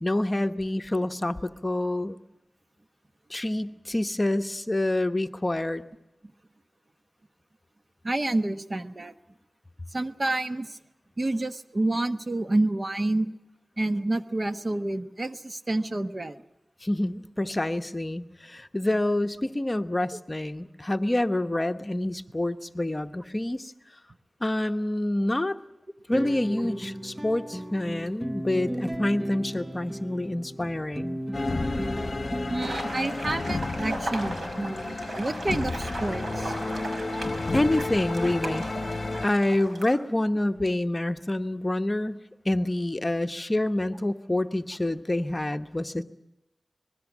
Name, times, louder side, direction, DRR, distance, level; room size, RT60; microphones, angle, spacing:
voice 1, 0.0-2.2 3.3-5.8 16.8-23.7 24.4-25.6 26.1-31.2 37.5-38.7 39.2-46.0, left 1 dB, 25° left, 8 dB, 1.0 m, -27 dB
voice 2, 8.0-9.1 9.9-10.8 11.2-13.3 13.8-16.4 32.5-36.6, right 2 dB, 45° right, 8 dB, 1.2 m, -29 dB
sound 1, 26.1-32.8, equal, 20° right, 0.8 m, -35 dB
sound 2, 31.3-39.3, left 3 dB, 50° left, 1.0 m, -32 dB
sound 3, 32.6-39.9, right 1 dB, 85° right, 5.6 m, -37 dB
25.5 x 20.5 x 7.3 m, 0.90 s
wide cardioid pair, 60°, 0 cm